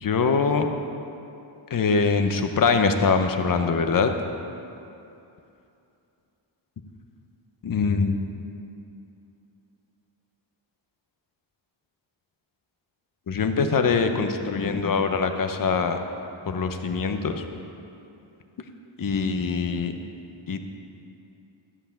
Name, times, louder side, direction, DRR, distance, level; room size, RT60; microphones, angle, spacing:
voice 1, 0.0-0.7 1.7-4.1 7.6-8.2 13.3-16.0 16.5-17.5 19.0-19.9 20.5-20.6, left 5 dB, 45° left, 6 dB, 0.8 m, -23 dB
13.0 x 5.8 x 8.5 m, 2.7 s
wide cardioid pair, 165°, 47 cm